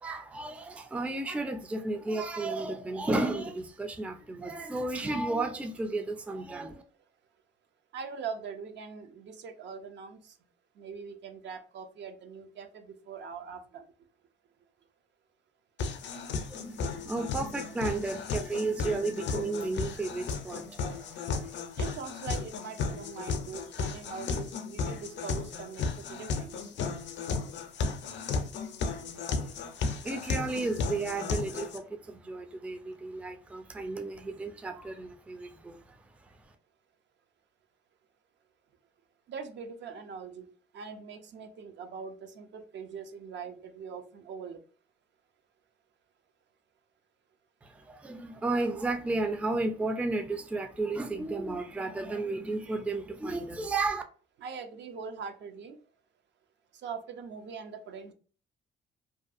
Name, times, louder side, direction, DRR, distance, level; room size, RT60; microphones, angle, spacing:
voice 1, 0.0-6.8 16.4-21.6 29.4-29.5 30.0-36.0 47.6-54.0, right 2 dB, 5° right, 0.3 m, -33 dB
voice 2, 7.9-10.3 10.8-13.8 21.8-26.7 30.5-30.7 39.3-44.6 54.4-55.8 56.8-58.1, right 6 dB, 65° right, 0.5 m, -42 dB
sound 1, 15.8-31.8, left 4 dB, 65° left, 0.4 m, -34 dB
2.5 x 2.3 x 2.4 m
cardioid pair, 90°, 20 cm